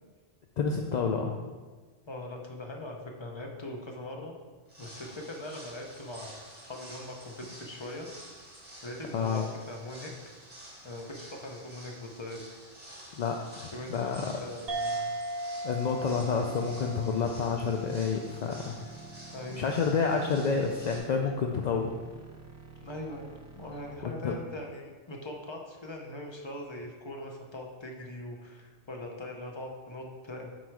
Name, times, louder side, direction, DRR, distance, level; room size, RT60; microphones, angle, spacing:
voice 1, 0.6-1.3 9.1-9.4 13.2-14.3 15.6-18.8 19.5-21.9 24.0-24.3, left 5 dB, 55° left, 3 dB, 0.5 m, -29 dB
voice 2, 2.1-4.3 4.8-6.4 6.6-8.1 8.8-10.4 10.8-12.5 13.7-15.0 16.4-16.6 19.3-19.6 22.8-30.5, left 1 dB, 25° left, 1 dB, 0.9 m, -41 dB
sound 1, 4.7-21.0, right 1 dB, 35° right, 1.7 m, -50 dB
sound 2, 14.7-19.6, right 1 dB, 60° right, 1.0 m, -38 dB
sound 3, 15.9-24.0, right 3 dB, 15° right, 0.8 m, -49 dB
7.8 x 4.7 x 4.8 m, 1.4 s
omnidirectional pair, 1.2 m